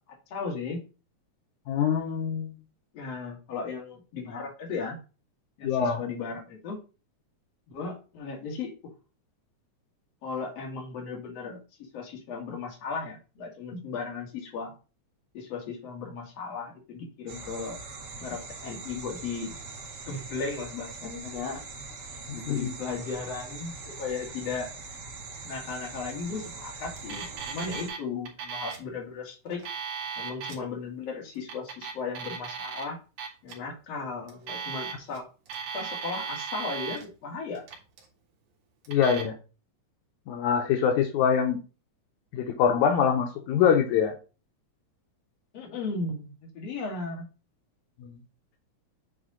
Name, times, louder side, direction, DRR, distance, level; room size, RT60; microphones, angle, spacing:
voice 1, 0.3-0.8 2.9-5.0 5.6-6.8 7.7-8.7 10.2-11.6 11.9-14.7 15.3-17.8 18.2-19.5 20.1-21.6 22.3-24.7 25.4-29.6 30.2-33.0 33.4-35.3 35.7-37.7 45.5-47.3, left 4 dB, 60° left, 0 dB, 2.8 m, -36 dB
voice 2, 1.7-2.5 5.6-6.0 22.5-22.7 38.9-39.3 40.3-41.6 42.3-44.1 48.0-48.2, left 7 dB, 85° left, 3 dB, 2.2 m, -24 dB
sound 1, 17.3-27.9, right 3 dB, 55° right, 1.2 m, -42 dB
Alarm, 27.0-28.0 28.3-28.9 29.5-30.6 31.4-32.8 33.2-33.5 34.3-35.2 35.5-37.1 37.6-38.1 38.8-39.2, right 6 dB, 90° right, 2.9 m, -36 dB
8.0 x 3.5 x 3.8 m, 0.33 s
omnidirectional pair, 3.4 m